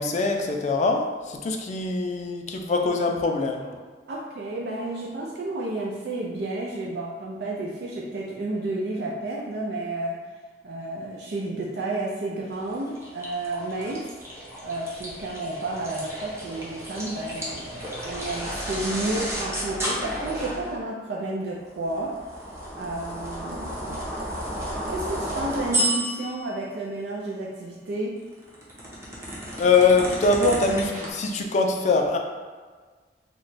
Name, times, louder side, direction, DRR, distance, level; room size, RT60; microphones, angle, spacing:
voice 1, 0.0-3.7 29.6-32.2, left 3 dB, 40° left, 2 dB, 0.4 m, -23 dB
voice 2, 4.1-10.2 10.6-14.0 14.6-22.1 22.7-24.0 24.9-28.1, right 2 dB, 65° right, -3 dB, 0.4 m, -31 dB
sound 1, 12.6-20.8 21.7-26.5 28.2-31.1, right 1 dB, 15° right, 0.7 m, -32 dB
3.0 x 2.2 x 3.9 m, 1.5 s
head